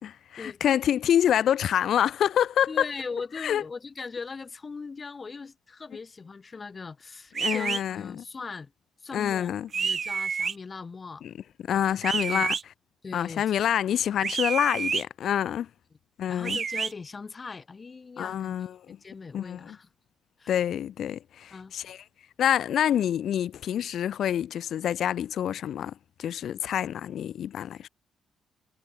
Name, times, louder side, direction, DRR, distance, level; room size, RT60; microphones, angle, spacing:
voice 1, 0.0-2.9 3.4-3.6 7.4-8.2 9.1-9.7 11.2-11.3 11.7-12.6 13.1-15.7 16.2-16.6 18.2-18.8 19.3-19.8 20.5-22.0 22.4-25.9 26.2-27.9, left 10 dB, 65° left, 2.8 m, -27 dB
voice 2, 2.7-8.7 9.0-11.2 11.7-12.0 12.3-12.5 13.0-13.5 16.3-19.9 20.4-20.5 21.5-21.7, left 4 dB, 30° left, 2.9 m, -40 dB
sound 1, 7.3-7.8 9.7-10.5 12.0-12.6 14.2-15.0 16.4-16.9, right 6 dB, 35° right, 1.1 m, -28 dB
cardioid pair, 135°, 0 cm